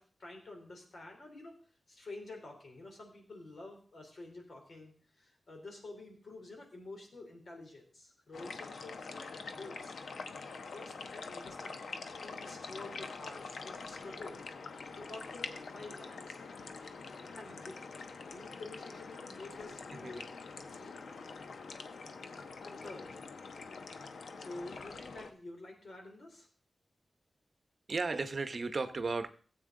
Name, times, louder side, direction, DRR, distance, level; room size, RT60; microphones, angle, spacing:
voice 1, 0.0-1.5 1.9-9.9 10.7-11.9 12.2-14.4 14.9-16.4 16.8-20.2 20.7-21.1 22.6-23.1 24.4-26.5, left 2 dB, 60° left, 1 dB, 3.5 m, -49 dB
sound 1, 8.3-25.3, left 4 dB, 85° left, 0.9 m, -45 dB
voice 2, 27.9-29.3, right 3 dB, 50° right, 10 dB, 0.8 m, -34 dB
16.5 x 8.0 x 3.8 m, 0.41 s
wide cardioid pair, 110°, 0 cm